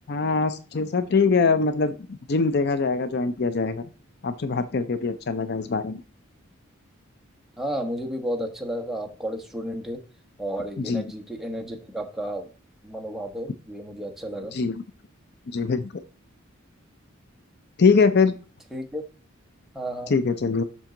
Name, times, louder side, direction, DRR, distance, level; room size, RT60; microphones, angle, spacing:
voice 1, 0.1-2.0 2.3-3.8 4.2-6.0 10.8-11.0 14.5-14.8 15.5-15.9 17.8-18.3 20.1-20.6, left 4 dB, 50° left, 12 dB, 0.5 m, -22 dB
voice 2, 7.6-10.0 10.4-12.5 12.8-14.6 18.7-19.0 19.7-20.1, equal, ahead, 1 dB, 1.1 m, -32 dB
7.3 x 6.2 x 3.8 m, 0.36 s
head